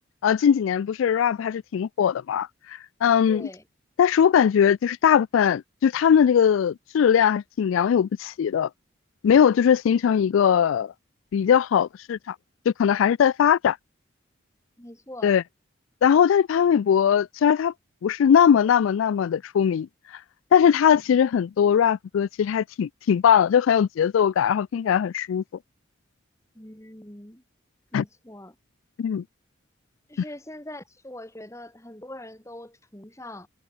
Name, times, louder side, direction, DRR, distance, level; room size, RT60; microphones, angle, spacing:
voice 1, 0.2-3.4 4.0-8.7 9.2-10.9 11.3-12.4 12.7-13.8 15.2-15.4 16.0-17.7 18.0-19.9 20.5-25.4 27.9-28.0 29.0-29.2, left 8 dB, 85° left, 0.3 m, -20 dB
voice 2, 3.3-3.6 14.8-15.4 16.5-16.7 26.5-27.4 27.9-28.6 30.1-33.5, left 1 dB, 15° left, 2.2 m, -42 dB
head